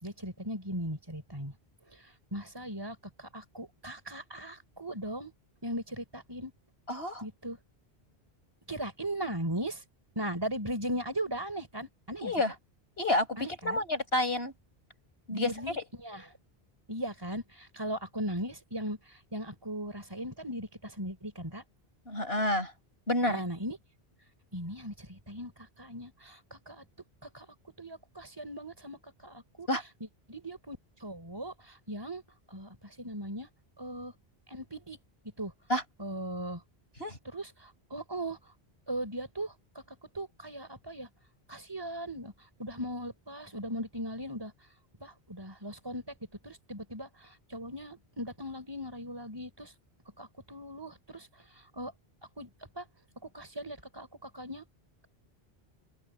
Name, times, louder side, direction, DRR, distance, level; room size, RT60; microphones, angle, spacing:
voice 1, 0.0-1.5 1.9-2.0 2.3-5.3 5.6-6.5 7.2-7.6 8.7-9.8 10.2-12.3 13.4-13.8 15.3-16.3 16.9-21.6 23.3-23.8 24.5-25.5 25.8-26.9 27.2-27.5 27.8-29.7 30.3-32.2 32.5-33.5 33.8-34.1 34.5-35.0 35.4-35.5 36.0-36.6 37.3-38.4 38.9-39.8 40.1-41.1 41.5-42.3 42.6-44.5 45.0-46.1 46.4-49.7 50.2-51.3 51.8-51.9 52.4-52.5 52.8-52.9 53.3-54.7, equal, 25° right, 4.2 m, -38 dB
voice 2, 6.9-7.2 12.2-12.5 13.0-13.4 13.6-14.5 15.3-15.5 22.1-22.7 23.1-23.4 29.7-29.8 35.7-35.8 37.0-37.2, left 1 dB, 75° left, 6.4 m, -29 dB
open air
omnidirectional pair, 1.1 m